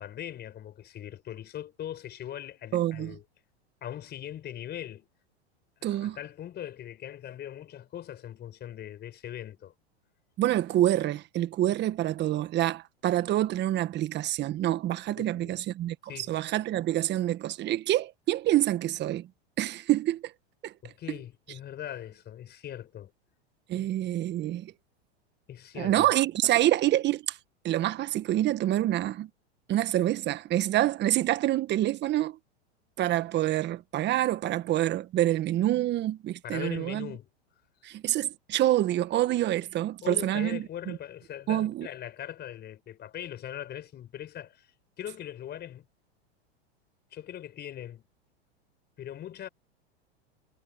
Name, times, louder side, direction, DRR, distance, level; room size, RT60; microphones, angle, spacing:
voice 1, 0.0-3.2 3.8-5.1 5.8-9.7 15.2-15.6 16.1-16.3 20.8-23.1 23.7-23.9 25.5-26.1 36.4-37.3 40.0-44.7 45.0-45.9 47.1-48.0 49.0-49.5, left 11 dB, 30° left, 5.2 m, -40 dB
voice 2, 2.7-3.2 5.8-6.2 10.4-19.3 19.6-20.2 20.6-20.7 23.7-24.7 25.8-27.4 27.6-29.3 29.7-32.4 33.0-37.1 37.8-41.0 41.5-41.9, right 14 dB, 35° right, 1.5 m, -27 dB
hypercardioid pair, 115°, 32 cm